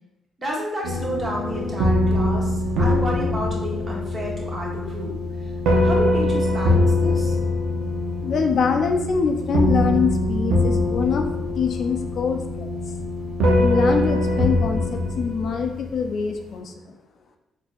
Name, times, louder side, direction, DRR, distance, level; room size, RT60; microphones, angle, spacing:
voice 1, 0.4-5.1 5.4-5.5 5.8-7.4, equal, 30° right, -3 dB, 1.1 m, -30 dB
sound 1, 0.8-16.3, left 1 dB, 85° right, 0.6 m, -23 dB
voice 2, 8.2-11.3 11.5-12.7 13.6-16.9, left 5 dB, 60° left, 4 dB, 0.4 m, -24 dB
4.2 x 2.6 x 2.3 m, 0.89 s
cardioid pair, 90°, 0 cm